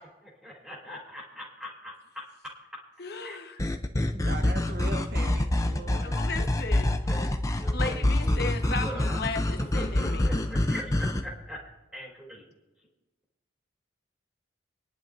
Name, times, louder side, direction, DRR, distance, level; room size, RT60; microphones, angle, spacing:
voice 1, 0.4-1.9 3.2-3.4 5.7-6.2 7.1-9.2 9.6-11.6 11.9-12.5, equal, 5° right, -5 dB, 3.4 m, -41 dB
voice 2, 3.0-3.6 6.0-6.9 7.7-10.4, left 3 dB, 55° left, 5 dB, 1.2 m, -35 dB
sound 1, 3.6-11.2, left 1 dB, 15° left, 0.5 m, -26 dB
voice 3, 3.7-6.2, right 2 dB, 50° right, 6 dB, 0.9 m, -40 dB
26.0 x 10.5 x 2.6 m, 1.1 s
head